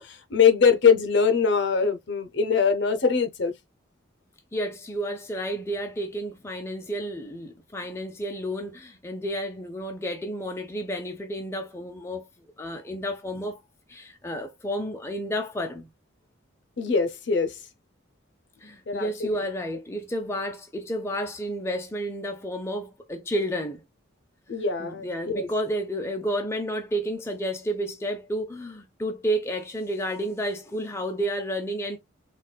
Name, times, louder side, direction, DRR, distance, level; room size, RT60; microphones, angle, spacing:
voice 1, 0.0-3.5 16.8-17.6 18.9-19.4 24.5-25.5, left 6 dB, 60° left, 0.6 m, -22 dB
voice 2, 4.5-13.6 13.9-15.9 18.6-23.8 24.8-32.0, equal, 15° left, 0.4 m, -31 dB
4.0 x 2.2 x 2.3 m
head